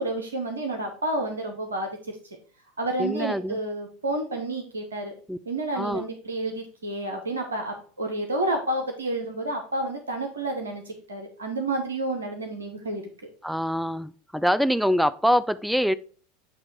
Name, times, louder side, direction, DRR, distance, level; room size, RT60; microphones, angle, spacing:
voice 1, 0.0-2.0 2.8-5.1 5.5-13.0, right 2 dB, 80° right, 4 dB, 0.8 m, -30 dB
voice 2, 3.0-3.6 5.3-5.4 5.7-6.0 13.4-15.9, equal, ahead, 15 dB, 0.4 m, -24 dB
8.5 x 2.9 x 4.4 m, 0.43 s
figure-of-eight pair, 80°, 0 cm